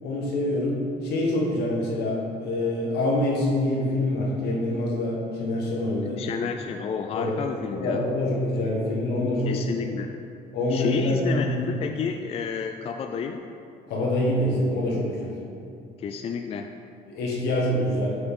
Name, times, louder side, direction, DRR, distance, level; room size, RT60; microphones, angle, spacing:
voice 1, 0.0-6.2 7.1-7.3 7.7-9.6 10.5-11.6 13.9-15.3 17.1-18.2, left 1 dB, 75° left, -2 dB, 1.6 m, -25 dB
voice 2, 6.0-8.0 9.4-10.1 10.7-13.5 16.0-16.7, left 6 dB, 35° left, 5 dB, 0.3 m, -30 dB
8.0 x 5.5 x 3.7 m, 2.6 s
cardioid pair, 110°, 17 cm